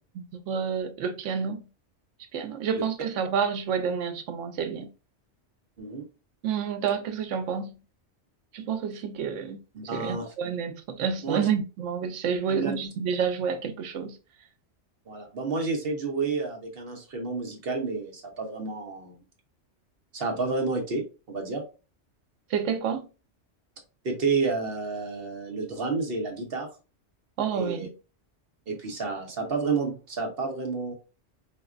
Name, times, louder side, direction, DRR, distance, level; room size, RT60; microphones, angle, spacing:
voice 1, 0.2-1.7 2.3-4.9 6.4-7.8 8.5-9.6 9.9-14.2 22.5-23.1 27.4-27.9, right 7 dB, 90° right, 0.9 m, -29 dB
voice 2, 9.7-10.3 11.2-11.4 12.5-12.8 15.1-19.2 20.1-21.6 24.0-26.7 27.5-27.9 28.7-30.9, right 4 dB, 55° right, 0.9 m, -30 dB
4.3 x 2.2 x 2.4 m
omnidirectional pair, 1.2 m